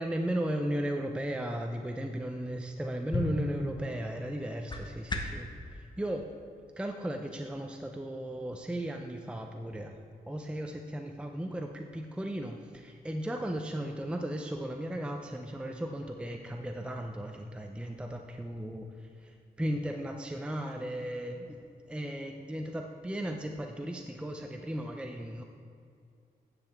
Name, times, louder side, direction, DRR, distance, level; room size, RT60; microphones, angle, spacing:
voice 1, 0.0-6.4 6.8-10.0 10.2-25.4, right 1 dB, 5° right, 3 dB, 0.5 m, -36 dB
sound 1, 2.7-5.5, left 2 dB, 30° left, 0.9 m, -36 dB
10.0 x 7.6 x 3.5 m, 2.4 s
cardioid pair, 95°, 16 cm